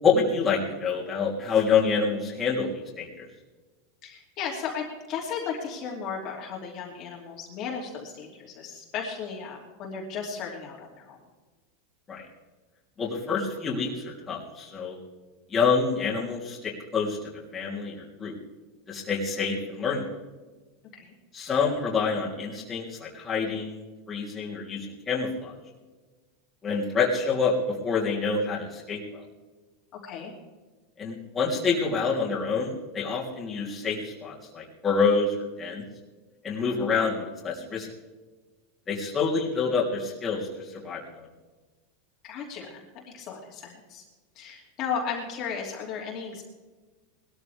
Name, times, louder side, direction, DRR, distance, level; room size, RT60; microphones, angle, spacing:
voice 1, 0.0-3.3 12.1-12.3 13.0-15.0 15.5-17.2 17.5-18.3 18.9-20.1 21.3-25.6 26.6-29.2 31.0-35.8 36.4-37.9 38.9-41.3, left 5 dB, 15° left, -4 dB, 3.3 m, -27 dB
voice 2, 4.0-11.2 20.9-21.1 30.0-30.3 42.2-44.0 44.3-46.4, left 6 dB, 35° left, -2 dB, 2.9 m, -35 dB
20.5 x 13.5 x 3.5 m, 1.3 s
supercardioid pair, 150°, 0 cm